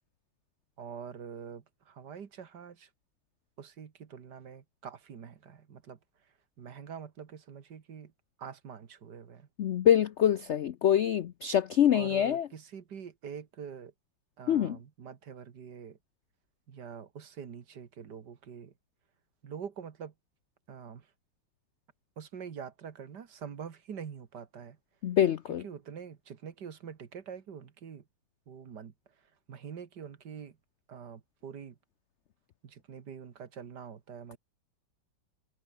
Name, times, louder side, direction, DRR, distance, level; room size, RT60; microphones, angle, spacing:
voice 1, 0.8-2.9 3.6-6.0 6.6-8.1 8.4-9.5 11.9-13.9 14.4-16.0 16.7-18.7 19.4-20.1 20.7-21.1 22.2-24.8 25.6-28.0 28.5-28.9 29.5-30.6 30.9-31.8 32.6-34.4, right 7 dB, 65° right, 2.2 m, -45 dB
voice 2, 9.6-12.5 14.5-14.8 25.0-25.6, left 10 dB, 85° left, 0.6 m, -25 dB
omnidirectional pair, 2.0 m